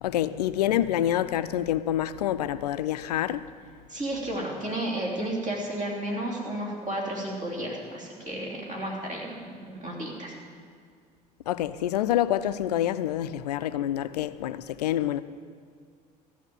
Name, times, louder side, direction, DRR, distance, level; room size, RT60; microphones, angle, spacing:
voice 1, 0.0-3.5 11.5-15.2, left 12 dB, 75° left, 0.4 m, -27 dB
voice 2, 3.9-9.4 9.7-10.3, right 1 dB, 35° right, 3.6 m, -32 dB
14.5 x 5.7 x 9.3 m
figure-of-eight pair, 60°, 21 cm